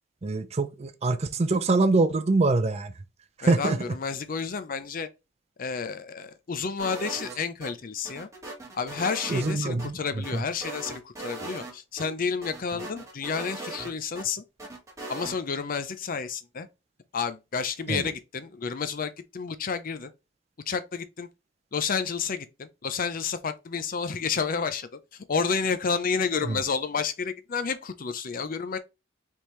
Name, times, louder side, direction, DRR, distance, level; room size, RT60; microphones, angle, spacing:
voice 1, 0.2-2.9 3.4-3.8 9.3-10.0 10.3-10.4 17.9-18.0 26.4-26.6, right 3 dB, 35° right, 0.5 m, -24 dB
voice 2, 3.4-5.1 5.6-8.3 8.7-14.4 15.1-16.7 17.1-20.1 20.7-21.3 21.7-28.8, left 5 dB, 45° left, 0.5 m, -30 dB
sound 1, 6.8-7.7 8.0-9.9 10.2-11.7 12.0-12.1 12.4-14.2 14.6-15.4, right 2 dB, 15° right, 1.3 m, -39 dB
4.4 x 3.5 x 3.1 m
head